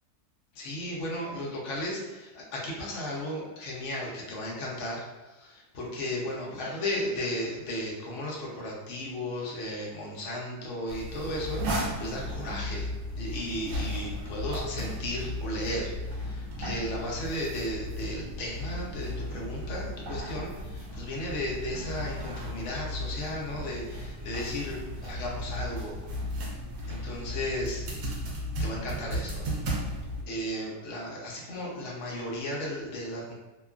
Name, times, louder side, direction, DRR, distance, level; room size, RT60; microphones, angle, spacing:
voice 1, 0.5-12.9 13.2-26.0 26.9-27.8 28.6-29.5 30.3-33.3, left 1 dB, 65° left, -3 dB, 0.8 m, -35 dB
sound 1, 10.9-30.2, equal, 75° right, 1.1 m, -35 dB
2.9 x 2.3 x 2.3 m, 1.1 s
omnidirectional pair, 1.8 m